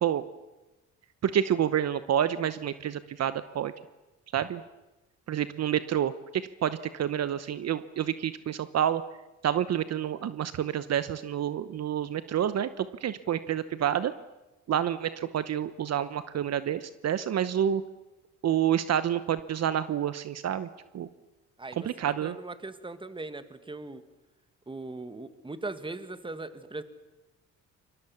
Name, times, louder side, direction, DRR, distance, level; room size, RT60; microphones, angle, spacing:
voice 1, 1.2-3.7 4.3-4.6 5.3-9.0 9.4-14.1 14.7-17.8 18.4-20.7 20.9-21.1 21.7-22.4, right 10 dB, 60° right, 13 dB, 1.0 m, -28 dB
voice 2, 21.6-24.0 24.7-26.8, right 2 dB, 15° right, 11 dB, 1.9 m, -39 dB
27.5 x 22.5 x 7.1 m, 1.1 s
cardioid pair, 90°, 30 cm